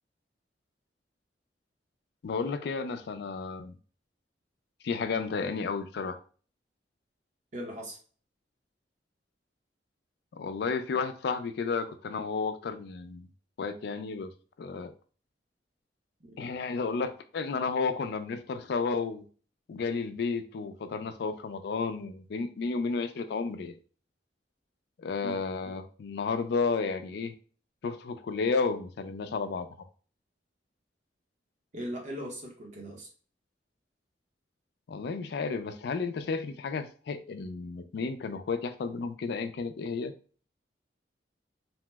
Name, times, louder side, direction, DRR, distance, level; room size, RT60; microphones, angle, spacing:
voice 1, 2.2-3.8 4.8-6.2 10.3-13.3 13.6-14.3 14.6-14.9 16.4-19.2 19.7-23.7 25.0-27.3 27.8-29.7 34.9-40.1, left 4 dB, 70° left, 9 dB, 0.4 m, -32 dB
voice 2, 7.5-8.0 16.2-16.4 25.2-25.4 31.7-33.1, equal, 45° right, 0 dB, 0.8 m, -39 dB
2.8 x 2.0 x 3.3 m, 0.40 s
head